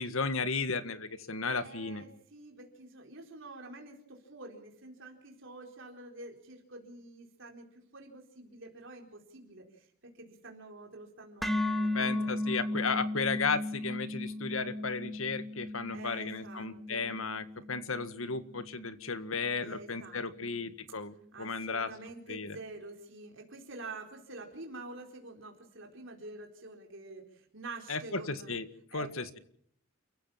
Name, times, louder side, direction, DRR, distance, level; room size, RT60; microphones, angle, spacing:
voice 1, 0.0-2.0 11.9-21.9 22.3-22.6 27.9-29.4, left 4 dB, 75° left, 11 dB, 1.8 m, -34 dB
voice 2, 1.6-9.9 10.2-12.3 15.9-17.1 19.6-20.7 21.3-28.5 28.9-29.1, right 2 dB, 60° right, 1 dB, 4.2 m, -47 dB
sound 1, 11.4-19.5, left 1 dB, ahead, 1.9 m, -36 dB
28.5 x 15.5 x 7.2 m, 0.65 s
head